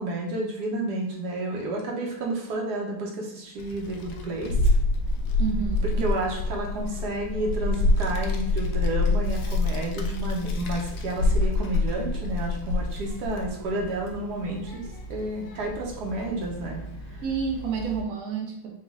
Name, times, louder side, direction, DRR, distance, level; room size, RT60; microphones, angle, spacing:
voice 1, 0.0-4.6 6.0-17.2, right 2 dB, 60° right, 0 dB, 1.1 m, -31 dB
Child speech kid speaking, 3.6-18.0, left 2 dB, 75° left, 1.0 m, -27 dB
voice 2, 5.4-6.1 17.2-18.8, right 6 dB, 80° right, 0 dB, 0.8 m, -30 dB
5.1 x 2.3 x 3.5 m, 0.74 s
omnidirectional pair, 2.4 m